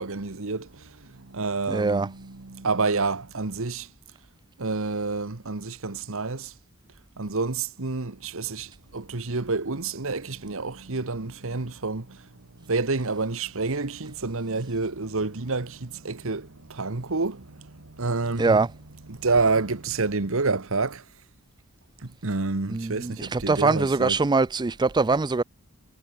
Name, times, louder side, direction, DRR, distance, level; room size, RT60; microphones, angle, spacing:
voice 1, 0.0-3.9 4.6-6.5 7.2-12.3 12.6-18.6 19.1-21.0 22.0-24.2, right 3 dB, 65° right, 1.4 m, -29 dB
voice 2, 1.7-2.1 18.4-18.7 22.7-25.4, right 3 dB, 20° right, 0.4 m, -23 dB
head